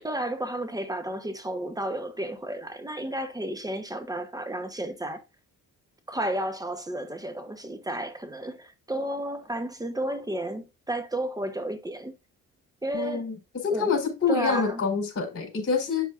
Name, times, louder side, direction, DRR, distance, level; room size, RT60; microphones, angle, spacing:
voice 1, 0.0-5.2 6.1-12.1 12.8-13.2 13.7-14.0 14.3-14.8, right 1 dB, 10° right, 1.1 m, -32 dB
voice 2, 12.9-16.1, left 5 dB, 50° left, 4.2 m, -26 dB
8.2 x 7.2 x 2.6 m
cardioid pair, 90°, 30 cm